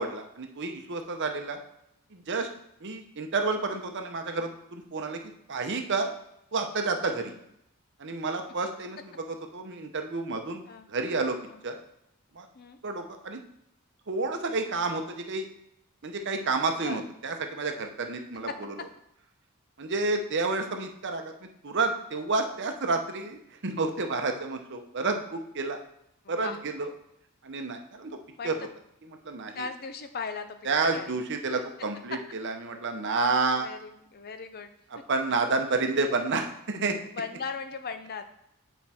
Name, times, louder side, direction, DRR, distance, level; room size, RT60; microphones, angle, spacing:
voice 1, 0.0-1.6 2.1-2.5 2.8-5.2 5.5-6.1 6.5-7.4 8.0-10.6 10.9-11.4 11.6-11.8 12.3-12.5 12.8-13.4 14.1-15.5 16.0-18.8 19.8-21.3 21.6-25.8 26.3-26.9 27.4-28.2 28.4-28.6 29.1-29.7 30.6-33.7 34.9-37.0, right 3 dB, 55° right, 5 dB, 0.8 m, -30 dB
voice 2, 26.2-26.6 28.4-28.5 29.5-30.6 30.9-31.2 33.6-34.7 37.1-38.2, left 5 dB, 45° left, 9 dB, 0.6 m, -38 dB
8.3 x 4.5 x 4.3 m, 0.78 s
head